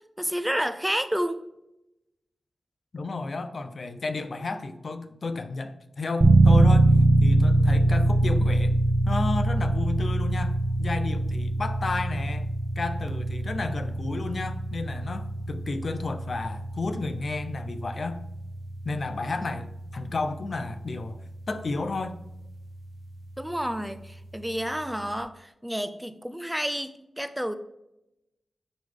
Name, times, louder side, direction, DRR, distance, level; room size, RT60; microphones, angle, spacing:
voice 1, 0.2-1.5 23.4-27.5, equal, 5° right, 11 dB, 0.5 m, -30 dB
voice 2, 2.9-6.9 7.2-8.7 9.1-12.5 12.8-18.2 18.8-22.2, left 3 dB, 60° left, 9 dB, 0.7 m, -32 dB
sound 1, 6.2-22.9, right 2 dB, 50° right, 0.9 m, -24 dB
10.0 x 3.4 x 3.5 m, 0.88 s
cardioid pair, 55°, 0 cm